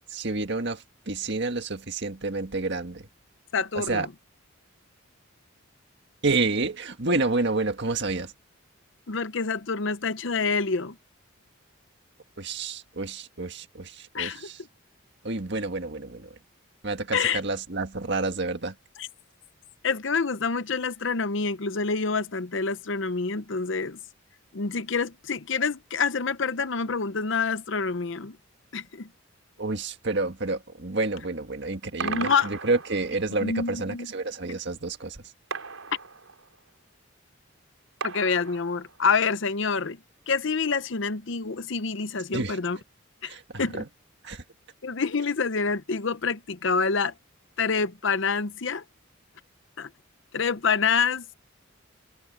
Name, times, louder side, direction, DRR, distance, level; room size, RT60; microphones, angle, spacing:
voice 1, 0.1-3.1 3.8-4.1 6.2-8.3 12.4-14.6 15.2-16.4 16.8-18.8 29.6-35.3 42.3-42.6 43.3-43.8 44.2-44.4, right 3 dB, 55° right, 1.8 m, -29 dB
voice 2, 3.5-4.1 9.1-11.0 14.1-14.5 17.1-17.4 19.0-19.1 19.8-24.0 24.5-28.4 28.7-29.1 32.0-32.5 33.4-34.1 38.0-40.0 40.3-42.8 43.2-43.8 44.8-47.1 47.6-48.8 49.8-49.9 50.3-51.3, left 5 dB, 60° left, 0.7 m, -27 dB
sound 1, 32.0-33.4 35.5-36.7 38.0-39.2, right 5 dB, 75° right, 4.5 m, -36 dB
head